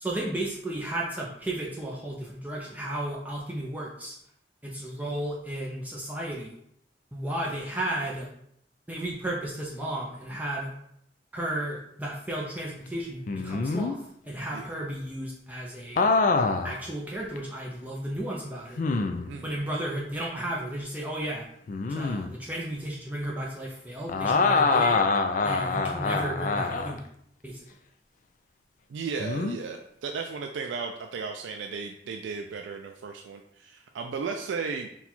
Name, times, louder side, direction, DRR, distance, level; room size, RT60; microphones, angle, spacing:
voice 1, 0.0-4.2 4.6-6.6 7.1-8.3 8.9-10.7 11.3-14.0 14.2-16.1 16.6-18.9 19.4-21.4 21.9-25.0 25.4-27.0 27.4-27.6, right 1 dB, 10° right, -4 dB, 0.5 m, -33 dB
sound 1, 13.3-13.9 16.0-16.8 17.4-17.5 18.8-19.3 21.7-22.3 24.1-27.0 29.2-29.6, left 4 dB, 45° left, 0.3 m, -25 dB
voice 2, 19.3-19.7 28.9-34.9, right 5 dB, 90° right, 4 dB, 0.3 m, -35 dB
4.0 x 2.3 x 4.3 m, 0.72 s
head